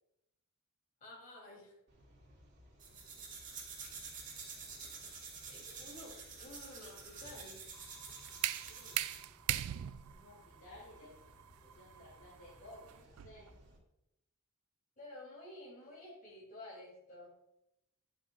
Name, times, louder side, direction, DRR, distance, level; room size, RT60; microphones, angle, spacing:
voice 1, 1.0-1.8 5.5-7.6 15.0-17.3, left 1 dB, 40° left, -4 dB, 3.1 m, -52 dB
sound 1, 1.9-13.8, equal, 55° right, 2.2 m, -63 dB
sound 2, 2.8-9.3, right 5 dB, 35° right, 1.8 m, -49 dB
voice 2, 4.9-5.2 8.3-9.0 10.1-11.1 11.6-13.5, left 1 dB, 60° left, -4 dB, 2.0 m, -57 dB
sound 3, 7.7-13.5, right 13 dB, 75° right, 0.3 m, -40 dB
10.0 x 8.0 x 2.4 m, 0.86 s
head